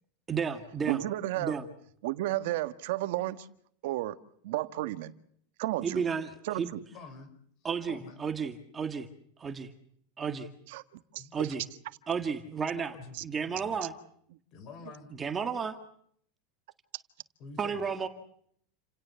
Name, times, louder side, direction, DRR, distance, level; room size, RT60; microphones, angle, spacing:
voice 1, 0.3-1.0 1.4-1.6 5.8-6.7 7.6-9.1 9.4-9.7 10.2-10.5 11.3-11.6 12.1-13.0 13.2-13.9 15.2-15.8 17.6-18.1, right 6 dB, 15° right, 7 dB, 1.9 m, -32 dB
voice 2, 0.9-1.5 2.0-3.5 3.8-4.1 4.4-5.1 5.6-6.0 6.4-6.8 10.7-11.5 13.1-13.2, right 16 dB, 65° right, 11 dB, 1.6 m, -33 dB
voice 3, 6.9-7.3 7.6-8.2 11.2-11.6 12.9-13.8 14.5-15.1 17.4-17.8, left 4 dB, 40° left, 13 dB, 5.3 m, -48 dB
30.0 x 18.0 x 7.0 m, 0.66 s
supercardioid pair, 160°, 0 cm